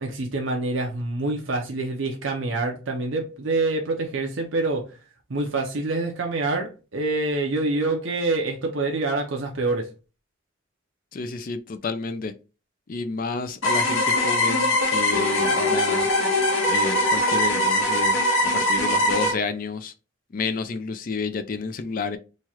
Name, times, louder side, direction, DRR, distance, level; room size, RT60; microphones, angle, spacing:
voice 1, 0.0-4.9 5.3-9.9, right 2 dB, 70° right, 0.6 m, -26 dB
voice 2, 11.1-12.3 12.9-16.1 16.7-19.9 20.3-22.2, left 4 dB, 40° left, 0.4 m, -30 dB
sound 1, 13.6-19.3, left 1 dB, 80° left, 1.2 m, -21 dB
3.1 x 2.4 x 4.1 m
head